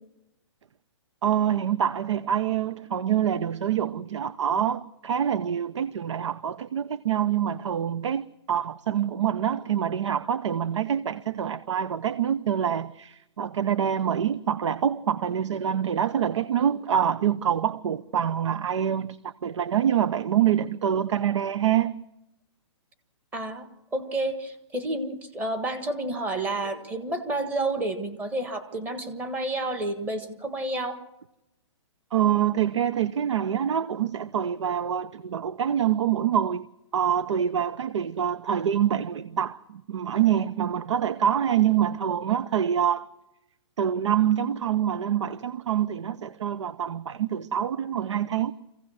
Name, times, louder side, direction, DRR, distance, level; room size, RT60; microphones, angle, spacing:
voice 1, 1.2-22.0 32.1-36.6 36.9-43.1 43.8-48.5, right 9 dB, 75° right, 0.8 m, -26 dB
voice 2, 23.3-31.0, right 2 dB, 10° right, 1.5 m, -30 dB
25.5 x 16.5 x 6.4 m
hypercardioid pair, 170°, 15 cm